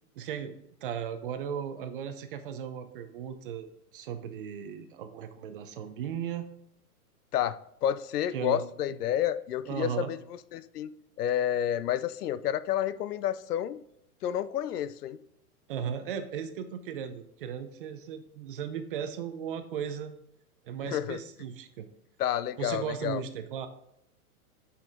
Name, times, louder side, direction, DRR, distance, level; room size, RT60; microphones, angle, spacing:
voice 1, 0.2-3.7 3.9-6.5 8.3-8.6 9.7-10.1 15.7-20.1 20.6-21.9 22.6-23.7, right 8 dB, 35° right, 9 dB, 0.7 m, -36 dB
voice 2, 7.3-10.2 10.5-10.9 11.2-13.8 14.2-15.2 20.8-21.2 22.2-23.2, left 10 dB, 85° left, 16 dB, 0.7 m, -30 dB
7.8 x 5.7 x 3.5 m, 0.77 s
hypercardioid pair, 160°, 45 cm